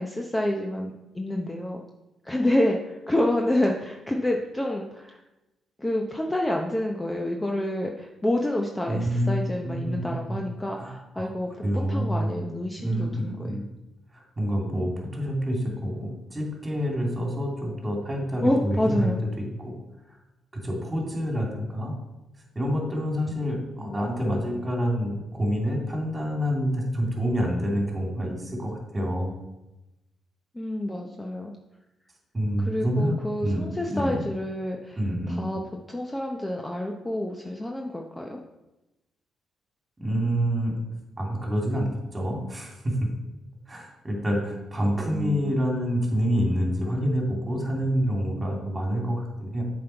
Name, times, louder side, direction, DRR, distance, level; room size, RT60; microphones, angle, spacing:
voice 1, 0.0-1.8 2.2-5.2 5.8-13.5 18.4-19.2 30.5-31.5 32.6-35.0 35.3-35.6 35.9-38.4 45.1-45.6, left 1 dB, 15° left, 1 dB, 0.7 m, -28 dB
voice 2, 8.9-9.4 9.6-10.0 10.3-10.4 10.7-11.3 11.6-12.3 12.8-13.6 14.1-19.7 20.5-21.9 22.5-29.3 32.3-33.6 33.9-34.2 35.0-35.4 40.0-40.7 41.2-43.1 43.7-49.6, equal, 20° right, -1 dB, 2.5 m, -27 dB
7.5 x 5.3 x 4.5 m, 0.99 s
cardioid pair, 90°, 0 cm